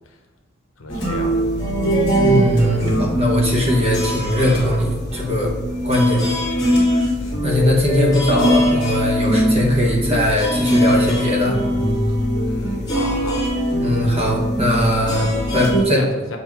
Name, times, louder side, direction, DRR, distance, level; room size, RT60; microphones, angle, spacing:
voice 1, 0.8-1.4 7.2-7.6 12.5-13.4 15.2-15.4 15.8-16.4, left 2 dB, 75° left, 2 dB, 0.9 m, -34 dB
sound 1, 0.9-15.8, equal, 20° left, 1.9 m, -21 dB
voice 2, 2.2-5.6 5.8-6.2 7.4-11.6 13.8-15.2 15.5-16.0, equal, 30° right, -1 dB, 1.2 m, -20 dB
7.1 x 2.8 x 4.6 m, 1.2 s
head